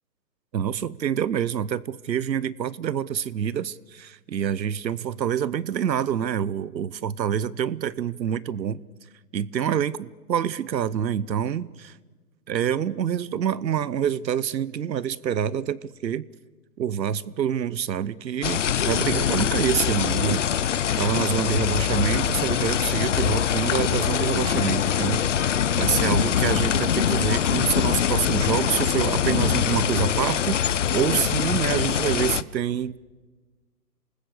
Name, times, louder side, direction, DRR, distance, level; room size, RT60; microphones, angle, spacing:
voice 1, 0.5-8.8 9.3-12.0 12.5-16.3 16.8-33.0, right 9 dB, 90° right, 0.9 m, -27 dB
sound 1, 18.4-32.4, left 9 dB, 50° left, 0.7 m, -23 dB
28.0 x 20.0 x 8.3 m
hypercardioid pair, 160°, 50 cm